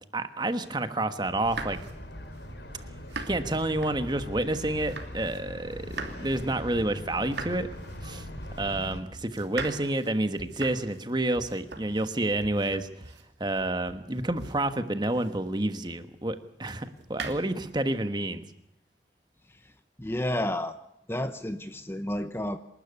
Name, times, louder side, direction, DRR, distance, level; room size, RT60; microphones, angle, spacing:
voice 1, 0.1-1.8 3.2-7.7 8.0-8.2 8.6-12.9 13.4-18.4, right 1 dB, 25° right, 10 dB, 1.3 m, -29 dB
sound 1, 1.3-5.4 5.7-15.6 16.6-17.8, right 3 dB, 75° right, 2.9 m, -42 dB
sound 2, 1.4-9.0, left 1 dB, 70° left, 3.6 m, -41 dB
voice 2, 20.0-20.7 21.1-22.6, left 1 dB, 15° left, 10 dB, 0.8 m, -30 dB
27.5 x 12.5 x 9.5 m, 0.85 s
head